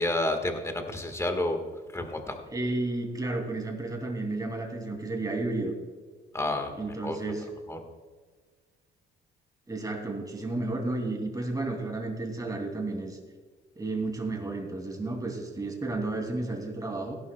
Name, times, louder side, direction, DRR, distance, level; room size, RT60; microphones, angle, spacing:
voice 1, 0.0-1.6 1.9-2.4 6.3-6.7 7.0-7.2 7.7-7.8, left 1 dB, 15° left, 5 dB, 1.6 m, -29 dB
voice 2, 2.5-5.7 6.8-7.5 9.7-13.2 13.8-17.2, right 2 dB, 20° right, 2 dB, 2.8 m, -32 dB
17.0 x 11.5 x 2.3 m, 1.5 s
cardioid pair, 90°, 20 cm